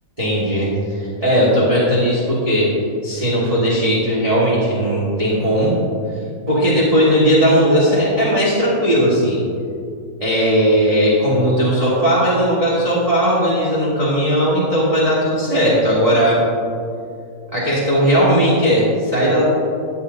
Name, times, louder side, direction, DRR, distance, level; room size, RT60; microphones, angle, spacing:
voice 1, 0.2-2.7 3.0-5.7 6.5-9.4 10.2-16.4 17.5-19.4, equal, 20° right, -8 dB, 1.6 m, -17 dB
13.5 x 8.5 x 2.6 m, 2.5 s
omnidirectional pair, 2.2 m